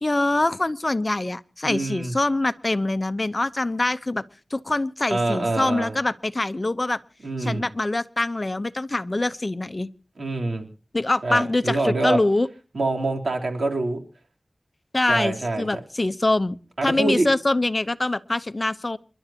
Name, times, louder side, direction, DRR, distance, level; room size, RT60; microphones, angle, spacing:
voice 1, 0.0-4.2 4.5-7.0 7.4-9.9 10.9-12.5 14.9-16.6 16.8-19.0, left 2 dB, 35° left, 14 dB, 0.8 m, -24 dB
voice 2, 1.6-2.1 5.1-5.9 7.2-7.6 10.2-10.7 11.2-12.2 12.7-14.0 15.1-15.6 16.8-17.3, right 2 dB, 90° right, 2 dB, 3.4 m, -25 dB
28.5 x 12.0 x 2.9 m, 0.35 s
wide cardioid pair, 70°, 0 cm